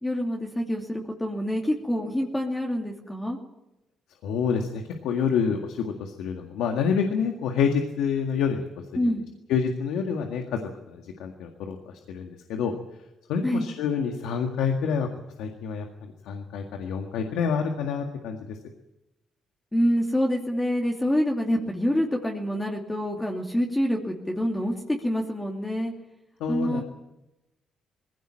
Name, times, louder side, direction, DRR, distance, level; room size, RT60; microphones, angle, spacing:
voice 1, 0.0-3.4 9.0-9.2 13.4-13.7 19.7-25.9 26.5-26.8, equal, 10° left, -1 dB, 2.8 m, -26 dB
voice 2, 4.2-8.7 9.0-9.1 9.5-10.6 10.9-12.7 13.3-15.1 15.4-18.6 26.4-26.8, left 6 dB, 90° left, 4 dB, 1.9 m, -27 dB
20.0 x 16.5 x 8.8 m, 0.95 s
cardioid pair, 90°, 0 cm